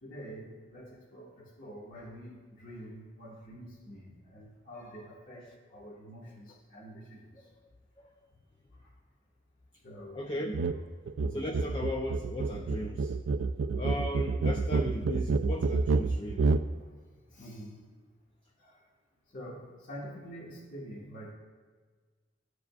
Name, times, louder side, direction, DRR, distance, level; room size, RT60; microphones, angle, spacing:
voice 1, 0.0-7.5 8.7-8.9 9.8-10.2 11.2-11.5 13.7-14.0 16.5-16.9 17.3-17.8 18.6-18.8 19.3-21.3, equal, 50° left, -6 dB, 1.4 m, -47 dB
voice 2, 10.1-10.9 11.3-13.2 13.8-16.6, left 1 dB, 30° left, 1 dB, 0.4 m, -37 dB
sound 1, 10.5-10.8 11.1-16.7, right 3 dB, 80° right, 0.3 m, -28 dB
14.0 x 4.9 x 2.3 m, 1.5 s
head